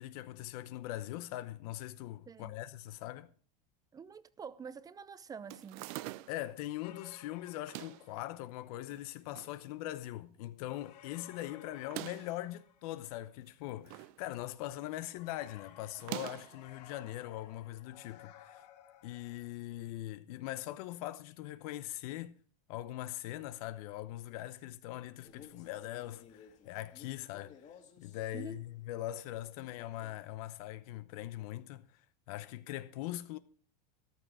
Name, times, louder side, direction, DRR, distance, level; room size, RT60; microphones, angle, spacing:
voice 1, 0.0-3.3 6.3-18.6 19.0-22.4 22.7-27.6 28.0-31.9 32.3-33.4, left 14 dB, 65° left, 0.8 m, -41 dB
voice 2, 3.9-5.9 28.3-28.6, right 6 dB, 20° right, 0.7 m, -47 dB
sound 1, 5.5-6.5 7.5-8.1 8.9-9.6 9.9-10.0 10.2-10.3 11.7-12.4 13.4-14.2 14.5-14.8 16.0-16.6, right 18 dB, 60° right, 0.6 m, -44 dB
sound 2, 6.8-8.6 10.7-13.2 15.1-19.5, left 10 dB, 85° left, 3.2 m, -57 dB
Male speech man speaking, 25.1-28.3 29.6-30.3, left 7 dB, 35° left, 2.3 m, -57 dB
13.5 x 11.0 x 4.8 m
supercardioid pair, 130°, 20 cm